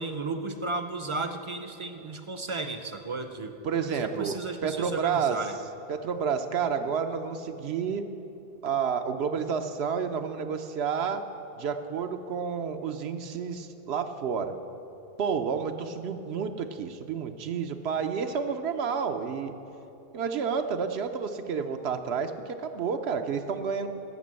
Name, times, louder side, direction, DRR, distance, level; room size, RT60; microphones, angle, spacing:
voice 1, 0.0-3.5 3.9-5.6, right 3 dB, 40° right, 7 dB, 0.5 m, -34 dB
voice 2, 3.6-4.4 4.6-5.4 5.9-8.0 8.6-11.2 11.6-14.5 15.2-19.5 20.1-23.9, right 6 dB, 80° right, 7 dB, 0.9 m, -30 dB
13.5 x 6.0 x 7.5 m, 2.9 s
omnidirectional pair, 1.1 m